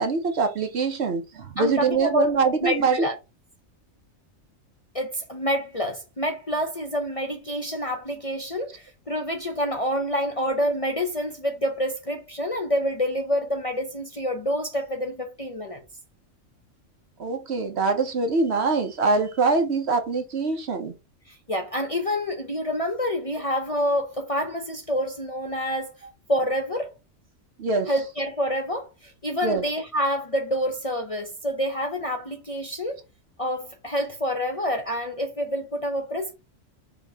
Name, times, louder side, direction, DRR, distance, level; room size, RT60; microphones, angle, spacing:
voice 1, 0.0-3.1 17.2-20.9 27.6-27.9 29.4-29.6, right 4 dB, 60° right, 1.0 m, -24 dB
voice 2, 1.6-2.3 2.6-3.1 4.9-15.8 21.3-25.9 26.3-26.9 27.9-33.0 33.4-36.3, equal, 35° left, 0.7 m, -27 dB
5.2 x 2.8 x 3.4 m
omnidirectional pair, 1.4 m